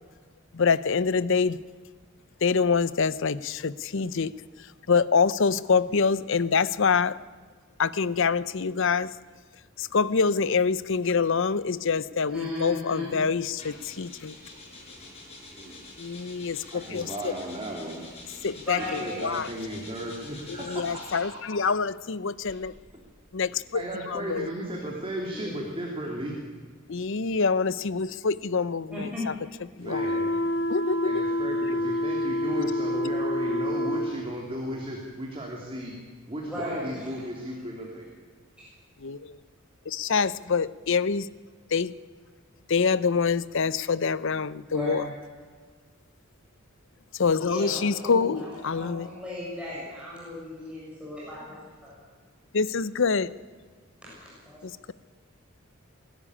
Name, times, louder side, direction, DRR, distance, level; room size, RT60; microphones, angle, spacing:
voice 1, 0.5-1.6 2.4-4.3 4.9-7.1 7.8-9.1 9.8-14.3 16.0-17.3 18.4-19.5 20.5-22.7 23.3-24.5 26.9-29.3 29.8-30.1 30.7-31.2 39.0-39.4 39.9-41.3 41.7-41.9 42.7-45.1 47.1-49.1 52.5-53.3 54.6-54.9, left 5 dB, 65° left, 17 dB, 0.7 m, -26 dB
voice 2, 12.3-13.2 18.6-19.3 25.3-25.6 28.9-29.2 36.5-36.9 38.6-38.7 44.7-45.0 47.5-51.9 54.4-54.6, left 2 dB, 5° right, -7 dB, 7.4 m, -35 dB
sound 1, 13.5-21.4 22.3-24.8, left 2 dB, 30° left, 6.4 m, -47 dB
voice 3, 15.5-15.8 16.7-18.0 18.8-21.6 22.4-22.5 23.5-26.3 29.8-30.3 31.0-35.9 36.3-38.1, right 1 dB, 25° right, -1 dB, 3.1 m, -35 dB
sound 2, 29.9-34.1, left 1 dB, 80° left, 3.3 m, -27 dB
22.0 x 13.5 x 10.0 m, 1.5 s
head